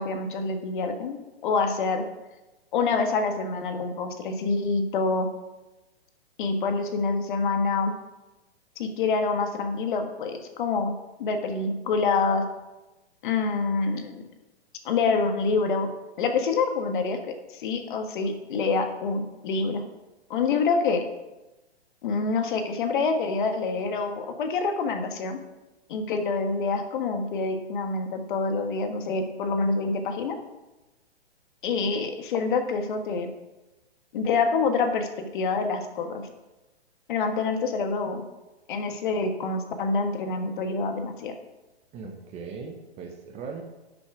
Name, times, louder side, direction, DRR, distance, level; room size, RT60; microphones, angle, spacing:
voice 1, 0.0-2.0 2.7-5.3 6.4-7.9 8.8-12.5 13.2-14.2 14.8-15.9 16.2-17.2 17.5-19.8 20.3-21.0 22.0-25.4 25.9-30.4 31.6-33.3 34.1-36.3 37.1-38.3 38.7-41.3, left 4 dB, 50° left, 6 dB, 1.5 m, -26 dB
voice 2, 41.9-43.6, right 5 dB, 20° right, 4 dB, 1.0 m, -39 dB
11.5 x 6.3 x 5.0 m, 1.1 s
hypercardioid pair, 145°, 32 cm